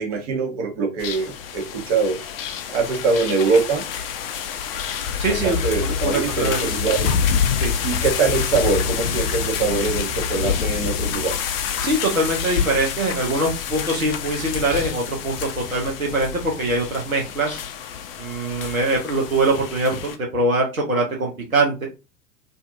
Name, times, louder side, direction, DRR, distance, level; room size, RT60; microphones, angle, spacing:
voice 1, 0.0-2.2 2.7-3.9 5.4-7.1 7.8-11.4, right 4 dB, 50° right, 1 dB, 1.0 m, -23 dB
sound 1, 1.0-20.2, left 7 dB, 45° left, 0.5 m, -27 dB
voice 2, 5.2-6.8 7.6-7.8 11.8-17.6 18.2-21.9, right 2 dB, 90° right, -1 dB, 0.8 m, -23 dB
2.5 x 2.4 x 2.5 m, 0.28 s
figure-of-eight pair, 90°, 40 cm